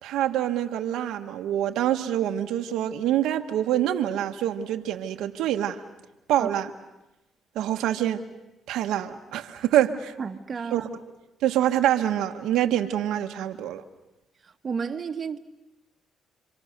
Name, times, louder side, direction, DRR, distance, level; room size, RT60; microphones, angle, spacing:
voice 1, 0.0-5.8 6.3-6.7 7.5-8.2 8.7-10.1 10.7-10.9 11.4-13.8, right 11 dB, 90° right, 1.3 m, -25 dB
voice 2, 10.2-10.9 14.4-15.4, right 5 dB, 40° right, 1.6 m, -32 dB
29.5 x 25.0 x 6.7 m
cardioid pair, 90°, 0 cm